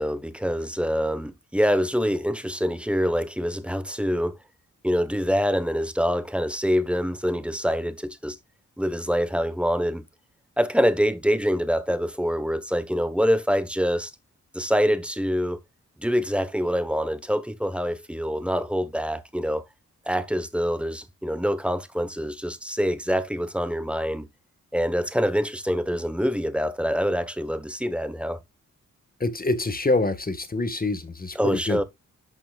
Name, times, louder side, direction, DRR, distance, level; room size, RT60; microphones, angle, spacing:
voice 1, 0.0-4.4 4.8-8.4 8.8-10.0 10.6-14.1 14.5-15.6 16.0-19.6 20.1-24.3 24.7-28.4 31.4-31.8, equal, 5° right, 1.2 m, -25 dB
voice 2, 29.2-31.8, left 2 dB, 25° left, 1.6 m, -26 dB
11.0 x 5.9 x 2.4 m
cardioid pair, 80°, 32 cm